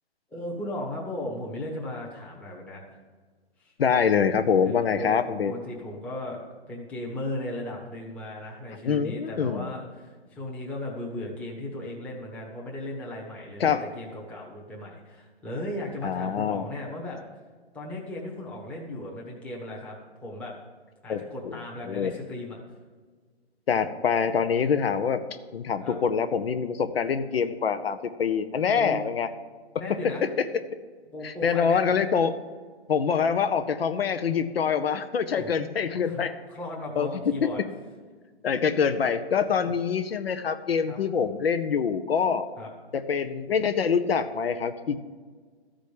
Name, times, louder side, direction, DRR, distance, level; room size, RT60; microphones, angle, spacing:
voice 1, 0.3-3.0 3.6-3.7 4.6-5.1 5.5-17.2 17.7-20.5 21.0-22.6 25.8-26.0 28.8-29.0 29.8-30.3 31.1-31.9 35.3-35.5 36.0-37.6 39.5-39.7 40.9-41.0 42.6-42.7, left 1 dB, 5° left, -4 dB, 1.1 m, -36 dB
voice 2, 3.8-5.5 8.8-9.7 13.6-13.8 16.0-16.6 21.1-21.6 21.9-22.1 23.7-25.2 25.5-29.3 31.2-32.4 32.9-36.3 37.0-37.1 38.4-42.5 42.9-45.0, left 6 dB, 60° left, 9 dB, 0.9 m, -25 dB
13.5 x 5.1 x 8.5 m, 1.5 s
hypercardioid pair, 165°, 33 cm